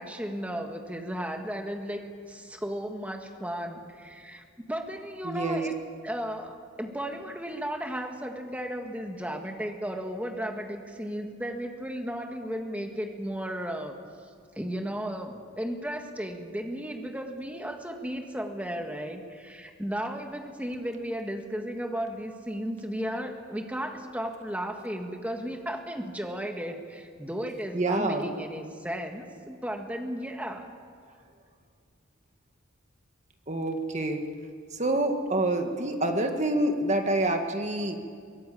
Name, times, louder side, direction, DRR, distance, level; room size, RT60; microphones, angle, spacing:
voice 1, 0.0-5.7 6.0-13.9 14.5-30.7, equal, 5° right, 3 dB, 1.8 m, -35 dB
voice 2, 5.2-5.6 27.7-28.3 33.5-34.2 34.8-38.0, right 1 dB, 35° right, 5 dB, 1.9 m, -27 dB
23.0 x 18.0 x 8.6 m, 2.2 s
head